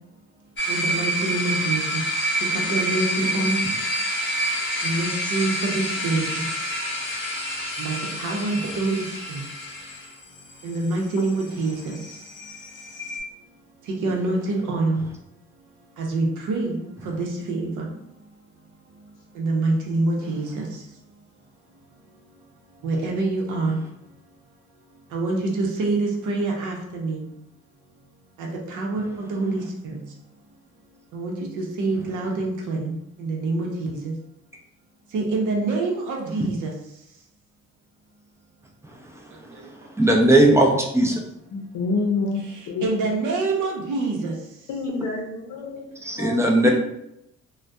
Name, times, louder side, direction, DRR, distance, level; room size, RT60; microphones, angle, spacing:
sound 1, 0.6-13.2, equal, 40° left, 0.7 m, -28 dB
voice 1, 0.7-3.7 4.8-6.4 7.8-9.5 10.6-12.2 13.8-15.1 16.0-17.9 19.3-20.8 22.8-23.8 25.1-27.3 28.4-30.0 31.1-34.1 35.1-36.7 39.3-39.7 42.8-44.3, right 2 dB, 75° right, 0 dB, 0.7 m, -26 dB
voice 2, 40.0-41.2 46.1-46.7, right 1 dB, 10° right, 0 dB, 0.4 m, -17 dB
voice 3, 41.5-42.4 42.7-42.8 44.7-45.9 46.2-46.3 46.7-46.8, left 3 dB, 75° left, -2 dB, 0.6 m, -27 dB
2.6 x 2.2 x 2.2 m, 0.80 s
cardioid pair, 90°, 30 cm